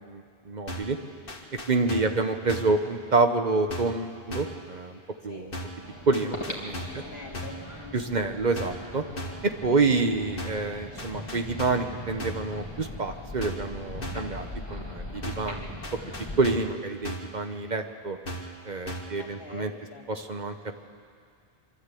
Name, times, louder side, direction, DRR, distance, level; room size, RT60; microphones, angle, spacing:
voice 1, 0.1-1.0 1.7-5.5 6.1-7.0 7.9-9.0 9.4-16.0 16.4-18.2 18.6-19.7 20.1-20.5, right 3 dB, 45° right, 6 dB, 1.0 m, -28 dB
sound 1, 0.7-1.0 1.3-2.2 2.5-2.8 3.7-4.0 4.3-4.6 5.5-5.8 6.1-7.1 7.3-7.7 8.6-8.9 9.2-9.5 10.4-10.7 11.0-11.9 12.2-12.5 13.4-13.7 14.0-14.3 15.2-15.6 15.8-16.8 17.0-17.4 18.3-18.6 18.9-19.2, equal, 60° left, 2.0 m, -37 dB
voice 2, 1.8-2.2 5.3-5.6 6.9-7.9 9.7-9.8 19.2-20.3, left 3 dB, 75° left, -1 dB, 2.8 m, -45 dB
sound 2, 5.8-16.4, left 1 dB, 25° left, 2.5 m, -40 dB
24.5 x 12.5 x 8.3 m, 2.2 s
omnidirectional pair, 1.0 m